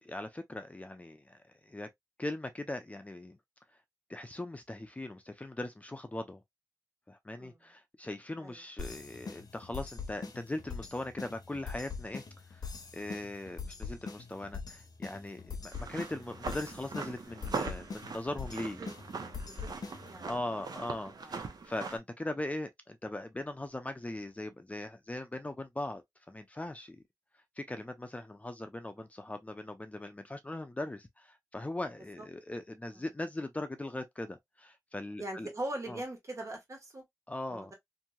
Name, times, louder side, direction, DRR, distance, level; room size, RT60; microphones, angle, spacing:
voice 1, 0.0-1.9 2.2-3.4 4.1-6.4 7.1-12.2 12.5-12.7 12.9-18.8 20.3-27.0 27.6-35.5 35.9-36.0 37.3-37.7, left 1 dB, 20° left, 0.5 m, -40 dB
sound 1, 8.8-20.3, left 5 dB, 75° left, 0.6 m, -43 dB
sound 2, 15.7-22.0, right 4 dB, 80° right, 0.7 m, -41 dB
voice 2, 35.2-37.0 37.5-37.7, right 1 dB, 50° right, 1.5 m, -40 dB
2.9 x 2.6 x 2.3 m
wide cardioid pair, 90°, 7 cm